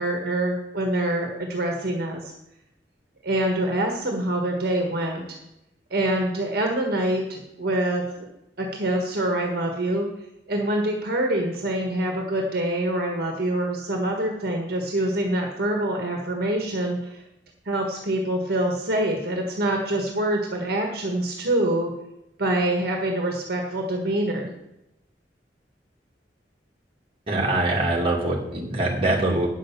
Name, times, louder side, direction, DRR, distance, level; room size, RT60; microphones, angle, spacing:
voice 1, 0.0-2.3 3.2-5.2 5.9-8.3 8.6-10.1 10.5-17.2 17.6-21.9 22.4-24.5, right 1 dB, 60° right, 1 dB, 1.6 m, -25 dB
voice 2, 27.3-29.5, right 2 dB, 35° right, -2 dB, 2.5 m, -23 dB
9.4 x 6.4 x 7.2 m, 0.86 s
head